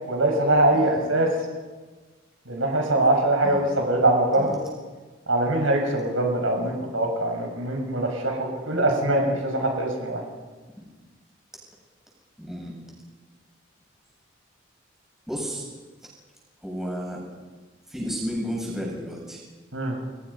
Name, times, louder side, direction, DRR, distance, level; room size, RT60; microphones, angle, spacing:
voice 1, 0.1-1.3 2.5-4.6 5.3-10.2 19.7-20.0, right 1 dB, 80° right, 1 dB, 6.4 m, -23 dB
voice 2, 0.7-1.2 3.4-3.7 4.3-4.5 6.5-6.9 10.8-10.9 12.4-12.7 15.3-15.7 16.6-17.2 17.9-19.4, equal, ahead, -3 dB, 7.8 m, -33 dB
29.5 x 22.5 x 5.7 m, 1.3 s
head